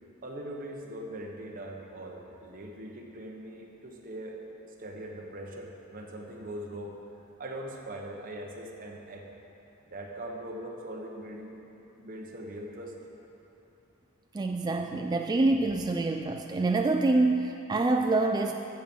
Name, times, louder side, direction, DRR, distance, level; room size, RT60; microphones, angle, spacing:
voice 1, 0.2-4.4 4.8-6.9 7.4-9.2 9.9-11.6 12.0-13.0, right 1 dB, 40° right, 0 dB, 1.2 m, -41 dB
voice 2, 14.3-18.5, right 2 dB, 20° right, 4 dB, 0.3 m, -26 dB
15.0 x 6.2 x 5.4 m, 2.9 s
head